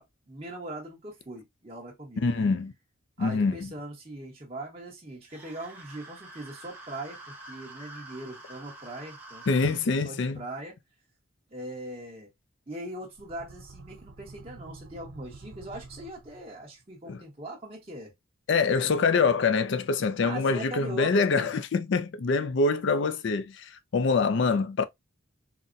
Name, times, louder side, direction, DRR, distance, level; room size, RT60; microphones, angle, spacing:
voice 1, 0.0-2.5 3.2-7.2 7.5-10.7 11.5-12.3 12.7-18.1 20.2-21.5, right 1 dB, 30° right, 1.1 m, -40 dB
voice 2, 2.2-2.7 3.2-3.7 9.5-10.4 17.1-17.2 18.5-24.8, left 4 dB, 60° left, 0.4 m, -25 dB
sound 1, 5.2-9.9, right 2 dB, 10° right, 0.7 m, -47 dB
sound 2, 13.0-16.8, right 3 dB, 70° right, 0.6 m, -48 dB
4.0 x 2.1 x 2.5 m
head